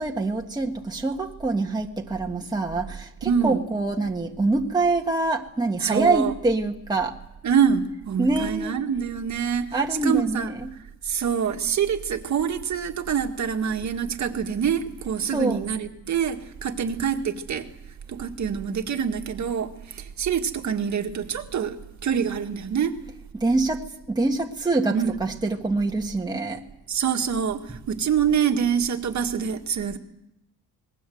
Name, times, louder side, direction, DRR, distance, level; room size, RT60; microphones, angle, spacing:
voice 1, 0.0-7.2 8.2-8.8 9.7-10.7 15.3-15.6 23.3-26.6, right 3 dB, 10° right, 1 dB, 1.6 m, -25 dB
voice 2, 3.2-3.6 5.8-6.4 7.4-10.5 11.0-17.7 18.1-21.8 22.0-23.0 24.9-25.2 26.9-30.0, right 7 dB, 50° right, 5 dB, 1.9 m, -25 dB
26.5 x 20.5 x 7.9 m, 0.85 s
cardioid pair, 150°, 35 cm